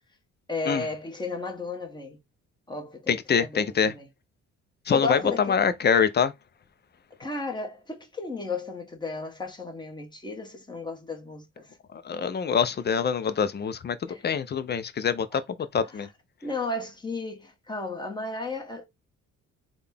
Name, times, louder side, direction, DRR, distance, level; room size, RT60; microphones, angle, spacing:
voice 1, 0.5-2.2 2.7-4.1 4.9-5.6 7.2-11.7 14.1-14.2 15.3-15.4 16.0-16.1 16.4-18.8, left 3 dB, 15° left, 1.2 m, -34 dB
voice 2, 3.1-3.9 4.9-6.3 12.0-14.0 14.2-15.4 15.7-16.1, left 6 dB, 35° left, 0.5 m, -24 dB
3.8 x 2.3 x 3.3 m
cardioid pair, 90°, 30 cm